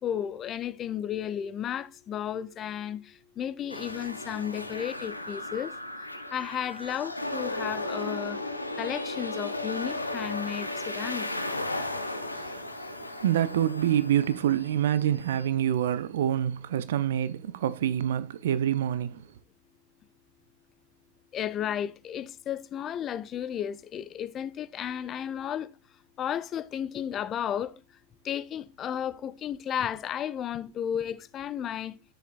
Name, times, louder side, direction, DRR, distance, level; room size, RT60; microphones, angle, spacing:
voice 1, 0.0-5.7 6.3-8.4 8.8-11.3 21.3-25.7 26.2-27.8 28.2-32.0, left 9 dB, 30° left, 0.6 m, -33 dB
sound 1, 3.7-15.5, left 1 dB, 85° left, 0.8 m, -35 dB
voice 2, 12.3-19.3, right 10 dB, 60° right, 0.4 m, -27 dB
10.0 x 6.6 x 2.4 m
figure-of-eight pair, 90°, 0 cm